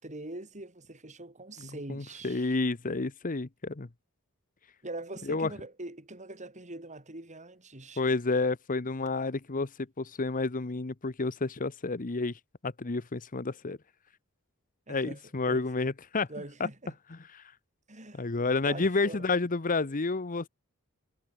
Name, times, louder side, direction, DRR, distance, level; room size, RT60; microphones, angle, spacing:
voice 1, 0.0-2.6 4.8-8.0 14.9-15.6 16.3-16.9 17.9-18.3 18.6-19.3, right 2 dB, 35° right, 5.4 m, -43 dB
voice 2, 1.9-3.9 5.3-5.5 8.0-9.7 10.0-13.8 14.9-16.3 17.3-17.4 18.2-20.5, left 3 dB, 40° left, 0.9 m, -30 dB
head